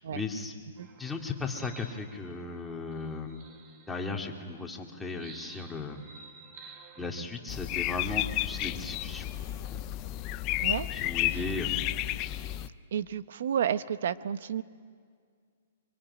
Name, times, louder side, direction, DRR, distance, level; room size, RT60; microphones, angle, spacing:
voice 1, 0.1-0.5 1.0-3.4 3.9-6.0 7.0-9.3 9.7-9.8 10.9-11.8, left 3 dB, 5° left, 0 dB, 2.4 m, -36 dB
sound 1, 0.8-4.5 5.1-7.2, right 5 dB, 30° right, 2.2 m, -52 dB
sound 2, 7.5-12.7, left 15 dB, 30° left, 0.7 m, -32 dB
voice 2, 12.9-14.6, right 9 dB, 70° right, 14 dB, 1.0 m, -31 dB
24.5 x 24.0 x 9.9 m, 2.1 s
hypercardioid pair, 150°, 0 cm